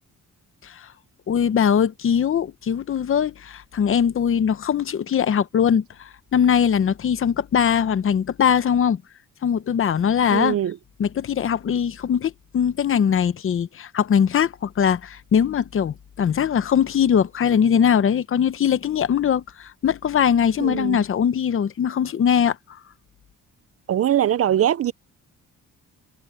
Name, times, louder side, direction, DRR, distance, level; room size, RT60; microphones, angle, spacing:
voice 1, 1.3-9.0 9.4-10.6 11.0-22.6, left 8 dB, 40° left, 0.7 m, -21 dB
voice 2, 10.3-10.8 20.6-21.0 23.9-24.9, right 11 dB, 45° right, 0.4 m, -21 dB
wide cardioid pair, 180°, 34 cm